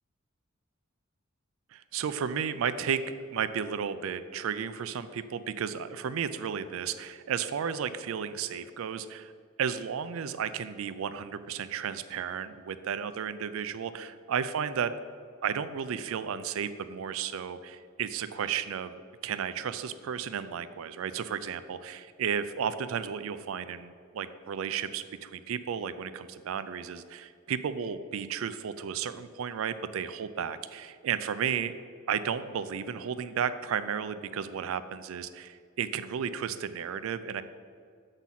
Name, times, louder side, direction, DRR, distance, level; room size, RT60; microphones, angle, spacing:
voice 1, 1.7-3.0 3.3-9.3 9.6-14.9 15.4-31.7 32.1-37.4, right 7 dB, 70° right, 13 dB, 0.4 m, -33 dB
7.2 x 3.9 x 5.7 m, 2.2 s
head